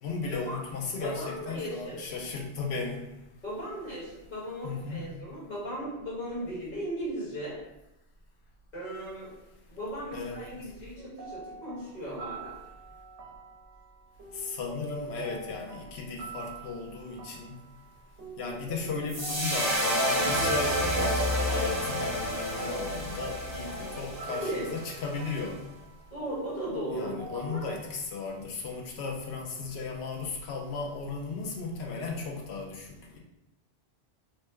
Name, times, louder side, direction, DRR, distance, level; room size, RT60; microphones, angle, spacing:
voice 1, 0.0-3.1 4.6-5.0 10.1-10.5 14.3-17.6 18.4-25.6 26.9-33.2, left 4 dB, 70° left, 0 dB, 0.9 m, -36 dB
voice 2, 1.0-2.0 3.4-7.6 8.7-9.3 9.7-12.5 24.2-24.7 26.1-27.6, equal, 40° left, -7 dB, 1.3 m, -37 dB
sound 1, 11.0-28.0, right 5 dB, 80° right, 0.9 m, -45 dB
sound 2, 19.1-25.4, equal, 25° right, 0.3 m, -29 dB
3.1 x 2.1 x 3.2 m, 0.91 s
omnidirectional pair, 1.1 m